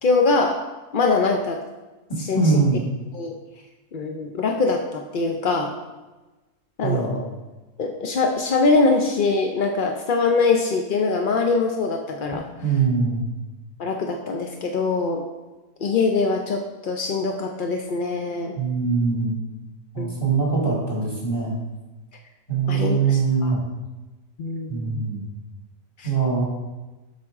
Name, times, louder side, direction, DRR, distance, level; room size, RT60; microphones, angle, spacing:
voice 1, 0.0-0.6 0.9-1.6 2.2-2.5 3.1-3.4 3.9-5.7 6.8-7.3 7.8-12.5 13.8-15.3 15.8-18.5 20.0-20.2 22.7-23.5 24.4-25.1 26.0-26.1, left 3 dB, 65° left, 3 dB, 0.5 m, -23 dB
voice 2, 2.3-2.8 6.8-7.2 12.6-13.3 18.6-19.4 19.9-21.6 22.5-23.6 24.7-25.2 26.0-26.4, right 4 dB, 15° left, -5 dB, 1.9 m, -22 dB
7.7 x 5.8 x 3.5 m, 1.1 s
omnidirectional pair, 1.5 m